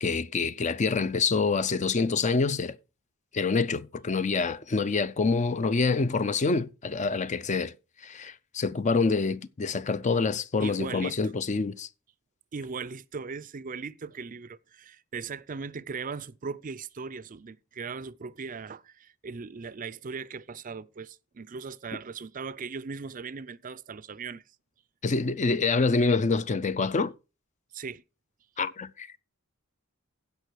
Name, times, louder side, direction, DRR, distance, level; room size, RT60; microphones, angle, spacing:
voice 1, 0.0-2.8 3.3-7.7 8.0-11.9 25.0-27.1 28.6-29.2, left 4 dB, 35° left, 0.5 m, -26 dB
voice 2, 10.6-11.2 12.5-24.4 27.7-28.0, right 5 dB, 40° right, 0.5 m, -38 dB
15.5 x 5.4 x 4.6 m
head